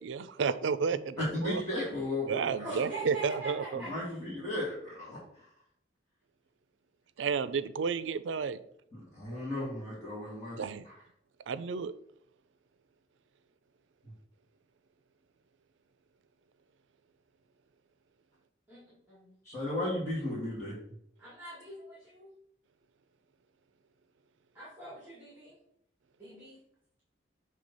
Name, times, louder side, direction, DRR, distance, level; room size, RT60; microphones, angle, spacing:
voice 1, 0.0-1.6 2.3-3.8 7.2-8.6 10.6-10.9 11.5-11.9, right 5 dB, 90° right, 14 dB, 0.4 m, -31 dB
voice 2, 1.2-2.9 3.8-5.4 9.1-10.9 14.0-14.1 19.4-20.8, left 1 dB, 15° left, -10 dB, 2.0 m, -35 dB
voice 3, 2.6-4.2 18.7-19.3 21.2-22.3 24.5-25.6 26.2-26.6, right 3 dB, 10° right, -6 dB, 1.7 m, -43 dB
6.7 x 3.3 x 5.4 m, 0.72 s
head